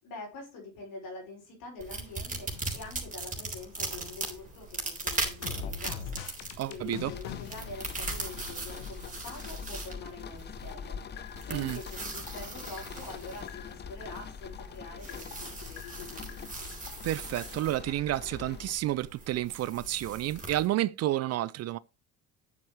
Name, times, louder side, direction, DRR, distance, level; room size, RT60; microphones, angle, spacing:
voice 1, 0.0-6.4 6.7-11.0 11.5-16.3, left 3 dB, 65° left, 5.4 m, -45 dB
sound 1, 1.8-20.7, right 3 dB, 20° right, 3.6 m, -40 dB
sound 2, 2.5-4.0 4.3-9.0 10.7-18.6 20.4-20.5, left 7 dB, 85° left, 1.2 m, -45 dB
voice 2, 6.6-7.1 11.5-11.8 17.0-21.8, right 14 dB, 45° right, 0.4 m, -30 dB
sound 3, 7.0-18.7, left 6 dB, 30° left, 0.7 m, -44 dB
9.6 x 7.1 x 3.1 m
hypercardioid pair, 65°, 36 cm